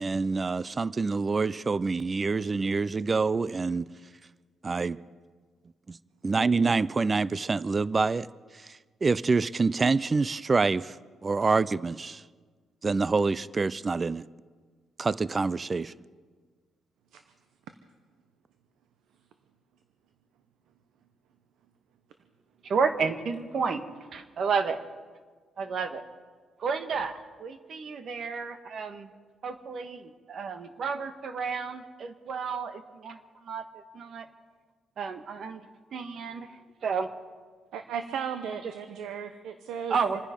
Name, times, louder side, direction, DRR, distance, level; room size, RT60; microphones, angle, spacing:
voice 1, 0.0-3.9 4.6-5.0 5.9-6.0 6.2-8.3 8.5-11.0 11.2-12.2 12.8-14.2 15.0-15.9, right 4 dB, 30° right, 19 dB, 0.4 m, -26 dB
voice 2, 22.6-23.8 24.1-24.8 25.6-26.0 26.6-29.1 29.4-34.3 35.0-37.1 39.9-40.2, right 5 dB, 55° right, 8 dB, 1.4 m, -32 dB
voice 3, 37.7-40.0, right 7 dB, 85° right, 9 dB, 0.8 m, -35 dB
27.0 x 10.0 x 5.3 m, 1.5 s
cardioid pair, 90°, 0 cm